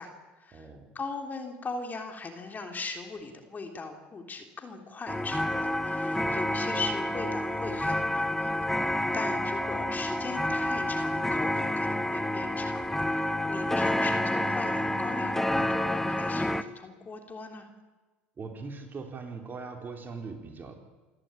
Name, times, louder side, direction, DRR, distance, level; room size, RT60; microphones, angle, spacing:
voice 1, 0.0-8.9 9.1-17.7, left 3 dB, 30° left, 4 dB, 3.5 m, -39 dB
voice 2, 0.5-0.9 18.4-20.8, right 4 dB, 35° right, 3 dB, 4.1 m, -40 dB
sound 1, 5.1-16.6, left 1 dB, 5° left, 1.0 m, -29 dB
27.0 x 13.0 x 9.0 m, 1.2 s
hypercardioid pair, 80°, 6 cm